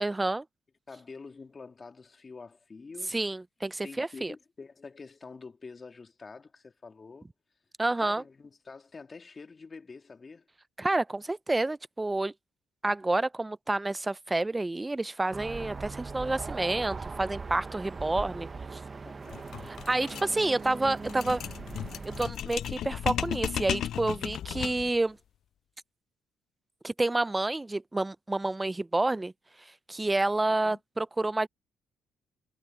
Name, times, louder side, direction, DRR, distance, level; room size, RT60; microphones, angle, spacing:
voice 1, 0.0-0.4 3.1-4.3 7.8-8.2 10.8-12.3 12.8-18.5 19.7-21.4 22.1-25.2 26.8-29.3 29.9-31.5, right 2 dB, 15° right, 0.5 m, -29 dB
voice 2, 0.9-3.1 3.8-7.3 8.0-10.5 18.4-18.5 19.0-19.4 30.6-30.8, left 4 dB, 30° left, 2.4 m, -47 dB
sound 1, 15.3-22.3, right 4 dB, 30° right, 1.0 m, -40 dB
sound 2, 19.3-25.0, left 10 dB, 70° left, 0.4 m, -35 dB
cardioid pair, 90°, 0 cm